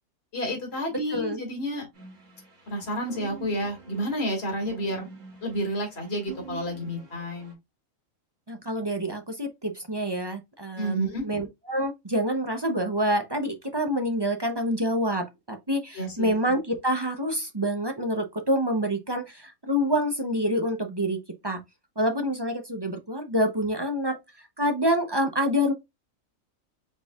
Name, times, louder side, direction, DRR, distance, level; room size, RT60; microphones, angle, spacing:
voice 1, 0.3-1.9 2.7-5.1 5.4-7.5 10.8-11.2 15.9-16.4, equal, 45° left, 2.3 m, -30 dB
sound 1, 1.9-7.5, right 4 dB, 60° right, 2.5 m, -45 dB
voice 2, 8.5-21.2 21.4-21.6 22.0-24.2 24.6-25.7, equal, 25° right, 0.5 m, -27 dB
5.3 x 4.2 x 2.3 m
omnidirectional pair, 1.5 m